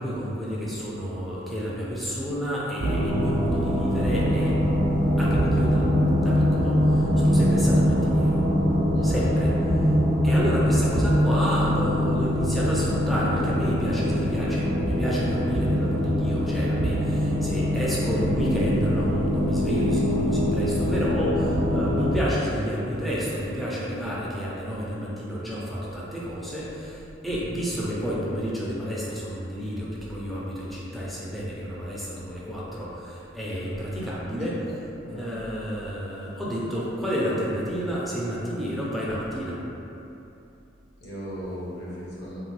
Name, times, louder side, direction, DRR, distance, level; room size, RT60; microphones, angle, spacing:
voice 1, 0.0-4.8 5.2-5.9 6.1-8.4 9.0-9.5 10.2-34.6 35.1-39.6, equal, ahead, -7 dB, 0.4 m, -30 dB
sound 1, 2.8-22.2, equal, 60° right, 0.4 m, -23 dB
voice 2, 8.9-9.3 35.1-35.3 41.0-42.4, equal, 60° left, -8 dB, 0.8 m, -37 dB
2.9 x 2.1 x 3.0 m, 2.9 s
head